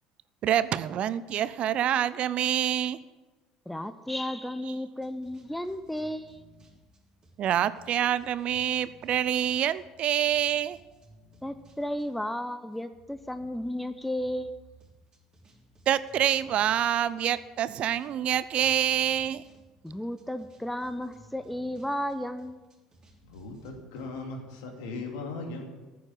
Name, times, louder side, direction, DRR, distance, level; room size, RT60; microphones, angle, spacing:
voice 1, 0.4-3.0 4.7-4.8 7.4-10.8 15.9-19.4, right 10 dB, 45° right, 16 dB, 0.5 m, -26 dB
voice 2, 3.7-6.4 11.4-14.5 19.8-22.7, left 1 dB, 5° left, 11 dB, 0.7 m, -33 dB
sound 1, 5.0-12.3 12.9-24.1, equal, 25° right, 3.7 m, -58 dB
voice 3, 23.2-25.9, left 3 dB, 65° left, 2 dB, 2.7 m, -38 dB
14.0 x 7.0 x 9.2 m, 1.2 s
figure-of-eight pair, 65°, 3 cm